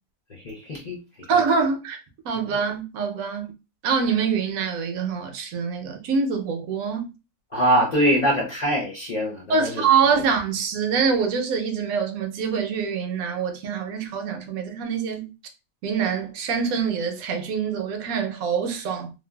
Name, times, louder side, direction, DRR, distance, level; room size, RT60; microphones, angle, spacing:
voice 1, 0.3-1.3 7.5-9.9 10.2-10.3, equal, 60° left, 0.4 m, -23 dB
voice 2, 1.3-2.0 2.2-3.5 3.8-7.1 9.5-15.3 15.8-19.1, right 6 dB, 70° right, 1.0 m, -25 dB
3.1 x 2.3 x 2.2 m
omnidirectional pair, 1.6 m